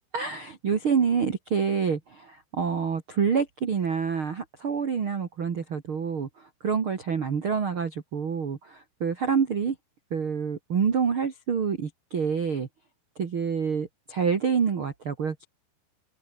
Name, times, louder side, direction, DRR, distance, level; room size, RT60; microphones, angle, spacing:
voice 1, 0.1-9.7 10.1-12.7 13.2-15.4, right 6 dB, 85° right, 1.1 m, -27 dB
omnidirectional pair, 5.8 m